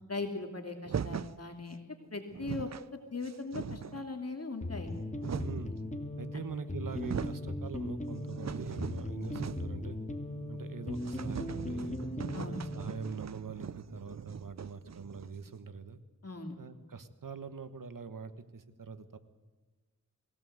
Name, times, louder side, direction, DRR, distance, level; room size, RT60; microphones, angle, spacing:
voice 1, 0.1-1.8 2.1-4.9 12.3-12.6 16.2-16.5, left 3 dB, 50° left, 4 dB, 2.6 m, -39 dB
sound 1, 0.9-1.4 2.0-2.1 2.3-2.9 3.2-4.1 4.8-5.7 6.5-6.6 6.9-7.5 7.9-9.8 10.1-10.2 10.5-10.6 11.0-15.5, right 7 dB, 55° right, 0.6 m, -40 dB
sound 2, 4.6-13.0, left 1 dB, 20° left, 2.5 m, -38 dB
voice 2, 5.4-5.7 6.2-10.0 10.5-12.0 12.4-16.0 16.6-19.2, right 5 dB, 85° right, 11 dB, 1.5 m, -44 dB
22.5 x 17.0 x 8.0 m, 1.3 s
wide cardioid pair, 55°, 32 cm